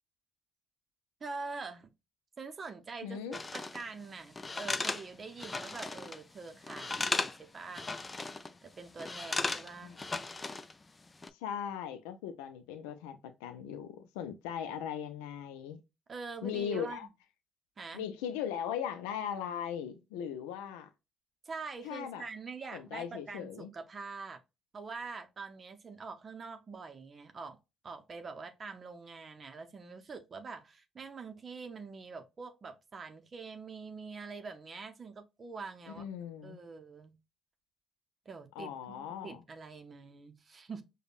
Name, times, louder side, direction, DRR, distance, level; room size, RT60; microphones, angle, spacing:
voice 1, 1.2-1.9 2.4-7.9 8.6-10.0 16.1-17.1 17.8-18.1 21.4-24.4 24.7-27.6 27.8-36.1 36.4-37.2 38.3-40.8, right 4 dB, 40° right, 0.6 m, -45 dB
voice 2, 3.0-3.4 9.5-10.0 11.3-15.8 16.4-17.1 17.9-20.9 21.8-22.2 22.7-23.7 36.0-36.6 38.6-39.4, left 9 dB, 90° left, 0.4 m, -39 dB
sound 1, 3.3-3.8 4.4-6.2 6.5-7.4 7.7-8.5 9.0-10.7 11.1-11.3, left 3 dB, 25° left, 0.4 m, -36 dB
5.1 x 2.2 x 2.4 m
supercardioid pair, 65°, 0 cm